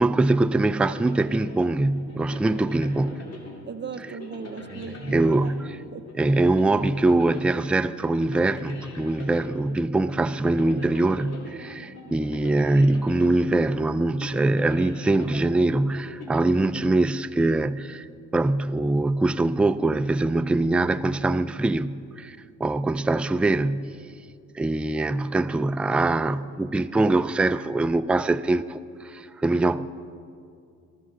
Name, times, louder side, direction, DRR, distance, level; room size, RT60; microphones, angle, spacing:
voice 1, 0.0-3.2 5.0-5.7 6.1-18.1 18.3-24.0 24.5-29.9, right 2 dB, 5° right, 0.3 m, -23 dB
sound 1, 0.8-17.4, left 2 dB, 55° left, 2.6 m, -42 dB
voice 2, 3.7-5.5 5.9-6.0, right 6 dB, 35° right, 0.7 m, -37 dB
22.5 x 13.5 x 3.8 m
cardioid pair, 90°, 30 cm